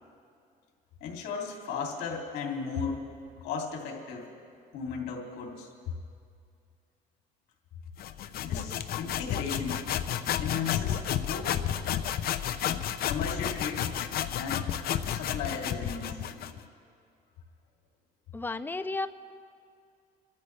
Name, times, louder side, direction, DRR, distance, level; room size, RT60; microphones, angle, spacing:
voice 1, 1.0-3.0 3.4-4.3 4.7-5.7 8.4-9.8 10.4-11.6 13.1-13.9 14.4-14.7 15.1-16.5, left 5 dB, 85° left, -1 dB, 2.8 m, -35 dB
sound 1, 8.0-16.6, left 10 dB, 65° left, 0.7 m, -31 dB
voice 2, 18.3-19.1, left 3 dB, 10° left, 11 dB, 0.5 m, -32 dB
27.0 x 13.0 x 3.4 m, 2.3 s
cardioid pair, 110°, 17 cm